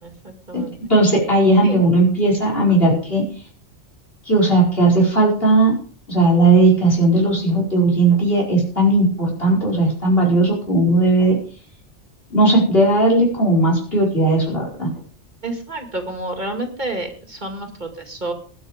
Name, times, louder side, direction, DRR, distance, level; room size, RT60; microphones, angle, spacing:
voice 1, 0.0-0.8 1.6-1.8 15.4-18.3, right 2 dB, 40° right, 5 dB, 2.5 m, -29 dB
voice 2, 0.9-3.2 4.3-5.7 6.1-11.4 12.3-14.9, right 2 dB, 55° left, -1 dB, 5.2 m, -16 dB
20.0 x 7.3 x 5.2 m, 0.43 s
omnidirectional pair, 1.2 m